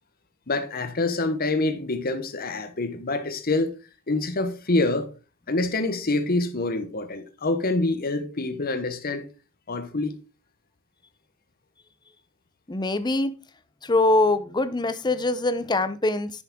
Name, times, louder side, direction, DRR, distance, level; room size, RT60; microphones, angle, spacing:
voice 1, 0.5-3.7 4.1-5.1 5.5-9.2 9.7-10.2, left 2 dB, 45° left, 1.1 m, -26 dB
voice 2, 12.7-13.3 13.8-16.3, left 2 dB, 20° left, 0.6 m, -23 dB
10.5 x 6.5 x 3.6 m
head